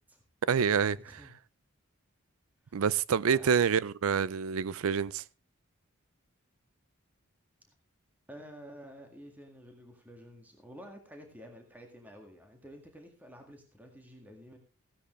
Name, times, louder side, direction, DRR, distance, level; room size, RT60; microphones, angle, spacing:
voice 1, 0.5-1.0 2.7-5.2, right 7 dB, 80° right, 0.5 m, -27 dB
voice 2, 1.1-1.4 2.7-2.8 3.2-3.5 8.3-14.6, equal, 5° right, 1.9 m, -50 dB
15.5 x 10.0 x 3.3 m
head